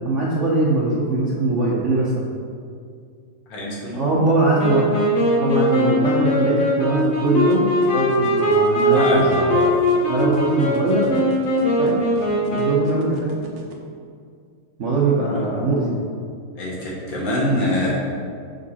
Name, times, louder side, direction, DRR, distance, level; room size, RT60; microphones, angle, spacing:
voice 1, 0.0-2.2 3.9-4.9 5.4-9.4 10.1-11.1 11.8-12.1 12.5-13.3 14.8-15.9, right 2 dB, 55° right, -5 dB, 0.8 m, -21 dB
voice 2, 3.5-4.1 5.7-5.9 8.9-9.7 15.3-15.4 16.6-17.9, left 1 dB, 70° left, -5 dB, 2.2 m, -25 dB
Wind instrument woodwind instrument, 4.6-13.0, equal, 50° left, 1.3 m, -20 dB
sound 1, 7.5-13.7, right 3 dB, 90° right, 0.5 m, -39 dB
6.5 x 5.3 x 4.1 m, 2.2 s
omnidirectional pair, 2.1 m